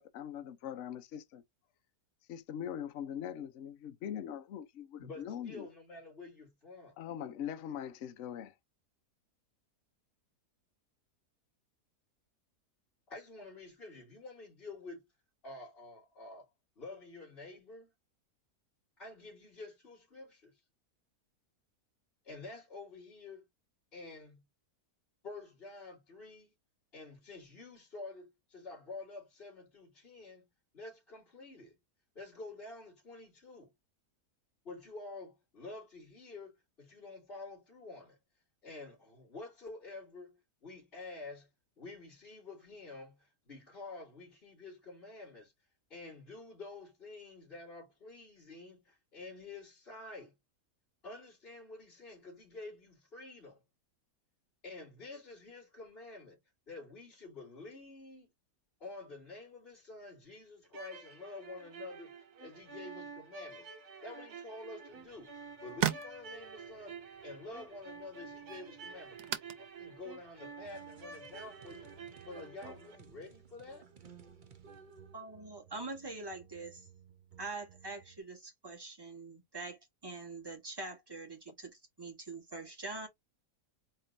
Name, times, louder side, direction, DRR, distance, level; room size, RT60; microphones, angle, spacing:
voice 1, 0.0-1.4 2.3-5.7 7.0-8.5, left 9 dB, 60° left, 0.9 m, -42 dB
voice 2, 5.0-7.0 13.1-15.0 15.4-16.5 16.8-17.9 19.0-20.6 22.2-23.5 23.9-24.5 25.2-26.5 26.9-30.5 30.7-31.8 32.1-33.7 34.6-38.2 38.6-41.5 41.8-45.5 45.9-50.4 51.0-53.6 54.6-56.4 56.7-58.3 58.8-63.7 64.0-65.3 65.6-73.9, left 3 dB, 40° left, 2.6 m, -49 dB
sound 1, 60.6-73.0, right 4 dB, 70° right, 1.7 m, -50 dB
sound 2, 64.9-72.2, right 11 dB, 85° right, 1.2 m, -42 dB
sound 3, 70.6-78.2, right 6 dB, 50° right, 0.5 m, -57 dB
voice 3, 75.1-76.9 77.4-83.1, right 3 dB, 15° right, 1.1 m, -44 dB
4.4 x 3.0 x 2.5 m
omnidirectional pair, 1.7 m